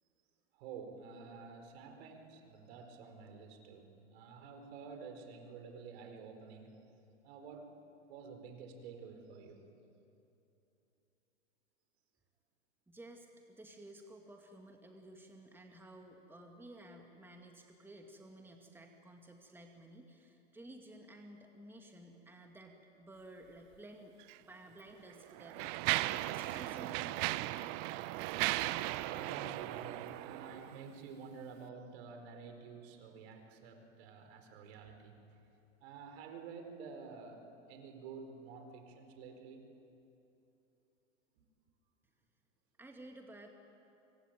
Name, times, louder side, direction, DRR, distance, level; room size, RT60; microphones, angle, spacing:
voice 1, 0.5-6.8 7.2-7.8 8.1-9.7 28.8-35.2 35.8-39.7, right 5 dB, 55° right, 5 dB, 4.6 m, -50 dB
voice 2, 12.9-27.3 42.8-43.5, right 1 dB, 5° right, 3 dB, 2.1 m, -54 dB
Mechanisms, 24.2-24.4 25.1-30.9, right 18 dB, 40° right, 0.8 m, -37 dB
25.0 x 24.0 x 9.3 m, 2.8 s
hypercardioid pair, 105°, 39 cm